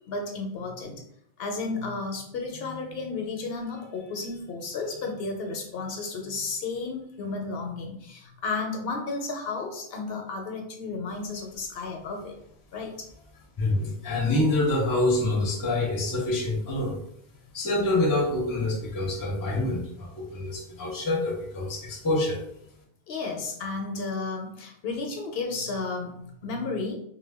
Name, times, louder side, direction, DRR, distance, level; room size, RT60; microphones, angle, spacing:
voice 1, 0.1-1.0 1.4-12.3 12.7-13.1 23.1-27.0, left 3 dB, 70° left, 3 dB, 0.8 m, -33 dB
voice 2, 13.6-17.0 17.5-22.4, left 2 dB, 25° left, -1 dB, 0.5 m, -26 dB
2.1 x 2.1 x 3.3 m, 0.70 s
omnidirectional pair, 1.1 m